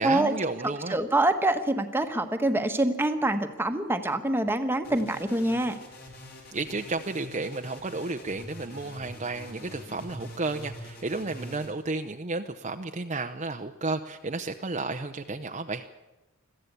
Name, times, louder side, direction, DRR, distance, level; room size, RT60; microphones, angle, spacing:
voice 1, 0.0-1.0 6.5-15.9, right 3 dB, 35° right, 6 dB, 0.7 m, -32 dB
voice 2, 0.9-5.7, right 1 dB, 10° right, 6 dB, 1.3 m, -25 dB
sound 1, 4.8-11.7, equal, 45° left, 4.4 m, -44 dB
21.5 x 14.5 x 8.3 m, 1.1 s
head